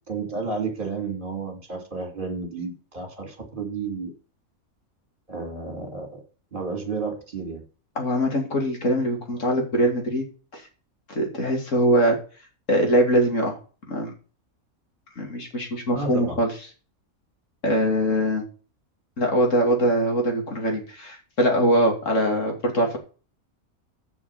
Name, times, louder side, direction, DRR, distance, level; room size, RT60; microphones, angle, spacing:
voice 1, 0.1-4.1 5.3-6.2 6.5-7.6 15.9-16.4, right 4 dB, 35° right, 4 dB, 3.0 m, -31 dB
voice 2, 8.0-10.3 10.5-10.6 11.1-12.2 12.7-13.6 13.9-14.1 15.2-16.5 17.6-18.4 19.2-23.0, equal, 60° left, 2 dB, 3.1 m, -22 dB
7.2 x 6.0 x 7.7 m, 0.37 s
omnidirectional pair, 1.5 m